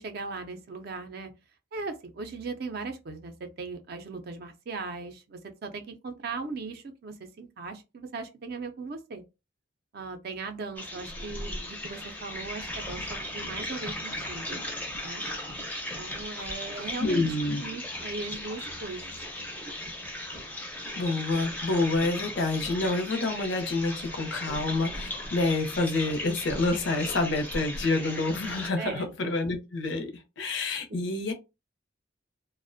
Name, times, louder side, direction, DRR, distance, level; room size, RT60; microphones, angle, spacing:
voice 1, 0.0-1.3 1.7-9.2 9.9-14.6 15.0-15.2 15.9-17.2 17.6-19.1 28.8-29.2 30.9-31.0, right 4 dB, 50° right, 0.4 m, -38 dB
sound 1, 10.8-28.7, left 1 dB, 10° left, 0.4 m, -37 dB
voice 2, 17.0-17.7 21.0-30.1 30.4-31.3, left 2 dB, 70° left, 0.6 m, -28 dB
2.4 x 2.1 x 2.5 m
head